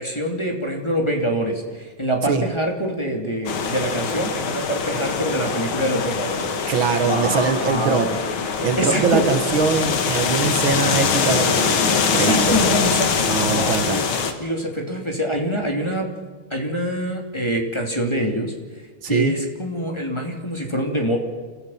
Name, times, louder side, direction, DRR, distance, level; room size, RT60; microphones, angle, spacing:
voice 1, 0.0-6.7 7.0-8.2 8.8-9.2 12.0-14.0 14.4-16.1 16.5-18.5 19.1-21.2, equal, 15° left, 1 dB, 2.8 m, -25 dB
sound 1, 3.5-14.3, left 6 dB, 75° left, 2.4 m, -23 dB
voice 2, 6.7-8.1 8.6-12.6 13.3-14.0 19.0-19.3, right 5 dB, 70° right, 8 dB, 2.2 m, -22 dB
29.0 x 16.0 x 5.8 m, 1.5 s
omnidirectional pair, 2.3 m